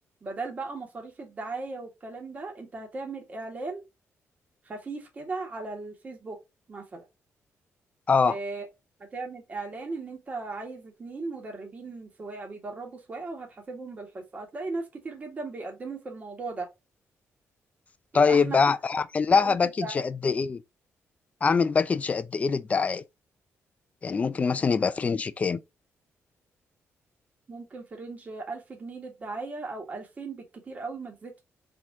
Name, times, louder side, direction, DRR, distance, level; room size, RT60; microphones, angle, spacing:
voice 1, 0.2-3.8 4.6-6.4 6.7-7.1 8.3-8.7 9.0-16.7 18.1-18.6 19.4-20.1 27.5-31.4, right 3 dB, 30° right, 1.6 m, -37 dB
voice 2, 18.1-20.6 21.4-23.0 24.0-25.6, left 5 dB, 30° left, 0.4 m, -24 dB
4.4 x 3.7 x 2.6 m
cardioid pair, 140°, 5 cm